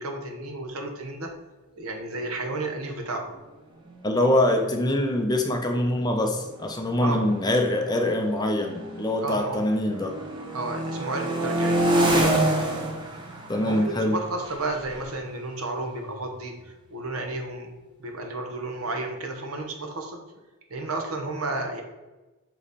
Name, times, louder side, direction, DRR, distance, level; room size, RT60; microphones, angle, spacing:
voice 1, 0.0-1.3 1.8-3.3 7.0-7.3 9.2-9.6 10.5-11.9 13.6-17.7 18.0-20.2 20.7-21.8, right 2 dB, 75° right, 4 dB, 1.0 m, -32 dB
voice 2, 4.0-10.1 13.5-14.2, left 1 dB, 20° left, 3 dB, 0.6 m, -24 dB
sound 1, 4.0-4.1 4.4-4.7 5.5-9.4 9.8-16.4, right 1 dB, 20° right, 0.8 m, -28 dB
8.3 x 3.1 x 4.1 m, 1.1 s
head